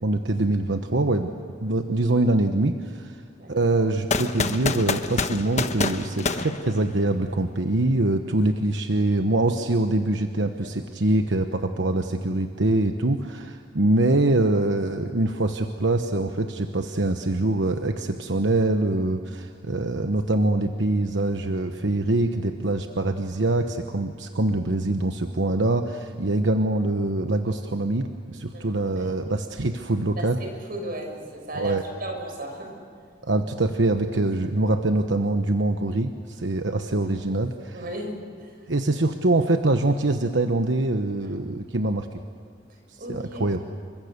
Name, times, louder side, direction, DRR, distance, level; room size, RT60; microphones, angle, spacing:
voice 1, 0.0-1.3 1.6-3.2 3.5-30.4 31.6-31.8 33.2-37.8 38.7-42.1 43.1-43.6, right 2 dB, 85° right, 6 dB, 1.1 m, -24 dB
voice 2, 3.4-3.7 10.5-10.6 28.5-28.7 28.9-29.1 30.2-32.8 37.0-37.1 37.7-38.6 41.2-41.4 43.0-43.6, right 1 dB, 55° right, 2 dB, 6.7 m, -36 dB
sound 1, 4.1-7.3, left 3 dB, 40° left, 1.1 m, -27 dB
28.5 x 24.5 x 6.8 m, 2.2 s
head